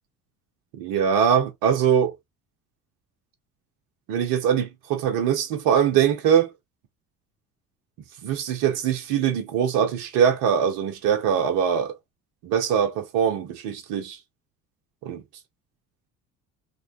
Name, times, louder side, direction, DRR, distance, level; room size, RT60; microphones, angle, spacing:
voice 1, 0.7-2.2 4.1-6.5 8.2-12.0 12.4-14.2 15.0-15.2, right 8 dB, 55° right, 0.9 m, -22 dB
2.8 x 2.2 x 2.5 m
figure-of-eight pair, 55°, 44 cm